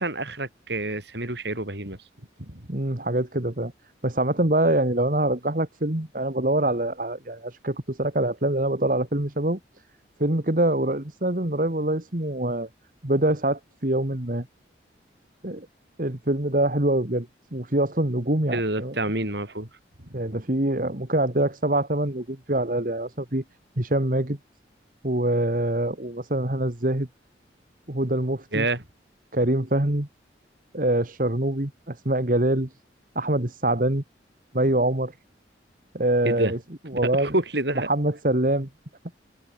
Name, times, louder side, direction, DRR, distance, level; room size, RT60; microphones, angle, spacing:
voice 1, 0.0-2.0 2.4-2.7 18.5-19.7 20.1-20.2 28.5-28.8 36.2-36.5 36.9-37.9, right 2 dB, 65° right, 6.7 m, -28 dB
voice 2, 2.7-3.7 4.0-9.6 10.2-12.7 13.0-14.5 15.4-15.7 16.0-19.0 20.1-23.4 23.8-24.4 25.0-27.1 27.9-28.7 29.3-30.1 30.7-32.7 33.2-34.0 34.5-35.1 35.9-36.6 36.9-37.3 37.9-38.7, right 1 dB, 45° right, 2.0 m, -24 dB
head